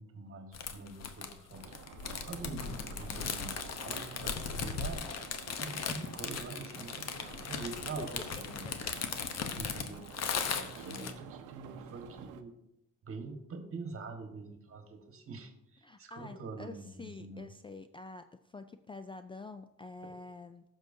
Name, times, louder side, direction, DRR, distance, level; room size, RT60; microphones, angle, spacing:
voice 1, 0.0-1.7 2.2-5.1 5.5-8.7 9.5-10.1 10.5-12.5 13.0-17.5, right 3 dB, 45° right, 6 dB, 1.5 m, -45 dB
sound 1, 0.5-11.1, left 6 dB, 60° left, 0.9 m, -38 dB
sound 2, 1.5-12.4, right 9 dB, 90° right, 0.7 m, -51 dB
voice 2, 15.8-20.6, left 3 dB, 20° left, 9 dB, 0.3 m, -47 dB
15.0 x 6.3 x 2.7 m, 0.85 s
cardioid pair, 90°, 30 cm